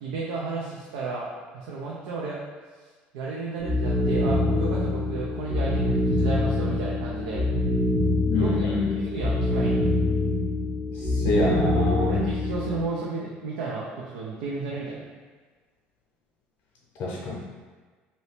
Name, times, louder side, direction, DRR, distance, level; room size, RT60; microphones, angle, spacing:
voice 1, 0.0-2.4 3.1-7.4 8.3-9.8 12.1-15.0, right 4 dB, 85° right, -4 dB, 0.4 m, -33 dB
sound 1, 3.6-12.8, left 2 dB, 30° right, 0.8 m, -25 dB
voice 2, 8.3-9.0 10.9-12.3 17.0-17.3, left 2 dB, 60° left, -4 dB, 0.6 m, -26 dB
2.9 x 2.6 x 3.2 m, 1.4 s
supercardioid pair, 85°, 4 cm